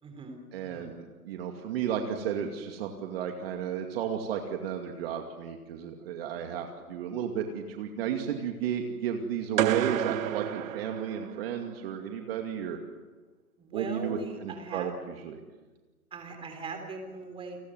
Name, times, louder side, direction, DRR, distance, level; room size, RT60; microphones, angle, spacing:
voice 1, 0.0-0.9 13.6-14.9 16.1-17.6, right 3 dB, 10° right, 5 dB, 3.9 m, -40 dB
voice 2, 0.5-12.8 13.7-14.9 15.2-15.4, right 8 dB, 40° right, 4 dB, 2.5 m, -33 dB
sound 1, 9.6-11.7, right 11 dB, 60° right, 0.8 m, -30 dB
30.0 x 20.0 x 8.0 m, 1.3 s
hypercardioid pair, 150°, 46 cm